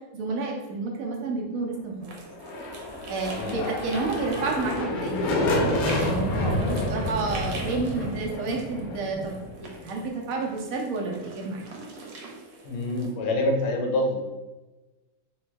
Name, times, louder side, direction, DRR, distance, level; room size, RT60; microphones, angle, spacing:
voice 1, 0.1-2.1 3.1-11.7, right 3 dB, 60° right, 0 dB, 0.9 m, -30 dB
sound 1, 2.0-13.1, right 3 dB, 80° right, 1.5 m, -44 dB
sound 2, 2.3-10.1, left 1 dB, 65° left, 0.9 m, -29 dB
voice 2, 12.6-14.2, left 1 dB, 90° left, 1 dB, 1.6 m, -26 dB
3.7 x 3.1 x 3.4 m, 1.1 s
omnidirectional pair, 2.3 m